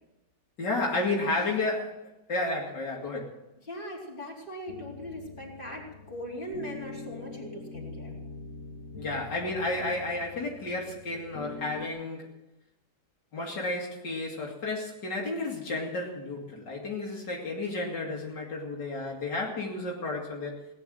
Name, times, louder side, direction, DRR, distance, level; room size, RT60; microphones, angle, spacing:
voice 1, 0.6-3.3 9.0-12.3 13.3-20.6, left 2 dB, 75° left, -2 dB, 3.0 m, -32 dB
voice 2, 3.6-8.1, equal, 30° left, -3 dB, 4.2 m, -40 dB
sound 1, 4.7-11.9, left 3 dB, 45° left, 1.6 m, -43 dB
18.0 x 9.7 x 7.7 m, 0.92 s
omnidirectional pair, 1.9 m